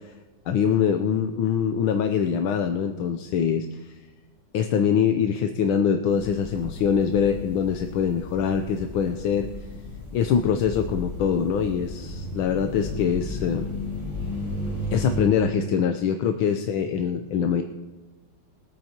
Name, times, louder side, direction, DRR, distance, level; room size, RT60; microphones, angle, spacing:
voice 1, 0.5-3.9 4.5-9.5 10.1-13.7 14.9-17.6, left 7 dB, 85° left, 6 dB, 1.5 m, -24 dB
sound 1, 6.1-15.3, left 1 dB, 15° left, 5.2 m, -34 dB
22.5 x 9.0 x 2.9 m, 1.2 s
omnidirectional pair, 2.2 m